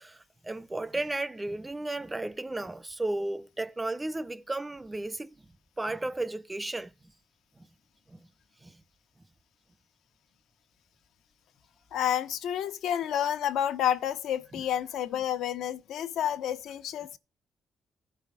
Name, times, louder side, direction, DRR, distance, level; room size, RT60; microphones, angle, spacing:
voice 1, 0.0-6.9 7.6-7.7 8.1-8.3 8.6-8.8 14.5-14.6, right 2 dB, 15° right, 0.6 m, -34 dB
voice 2, 11.9-17.2, left 10 dB, 80° left, 1.2 m, -30 dB
14.5 x 5.6 x 4.9 m
cardioid pair, 90°, 0 cm